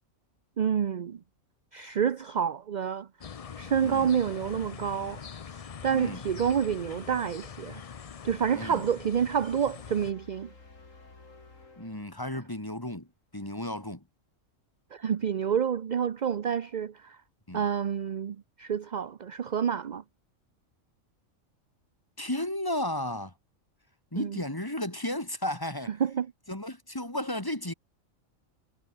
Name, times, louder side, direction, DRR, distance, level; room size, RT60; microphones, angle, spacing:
voice 1, 0.6-1.2 1.7-3.1 3.6-5.2 5.6-7.8 8.2-10.5 14.9-17.2 17.5-20.0 24.2-24.4 26.0-26.3, right 8 dB, 45° right, 0.6 m, -28 dB
sound 1, 3.2-10.1, left 7 dB, 45° left, 0.5 m, -43 dB
voice 2, 3.8-4.1 5.9-6.2 8.5-8.8 11.8-13.1 13.3-14.0 17.5-17.6 22.2-23.3 24.1-25.9 26.5-27.7, left 1 dB, 15° left, 2.6 m, -33 dB
sound 2, 9.6-12.8, left 3 dB, 70° left, 4.0 m, -54 dB
omnidirectional pair, 1.4 m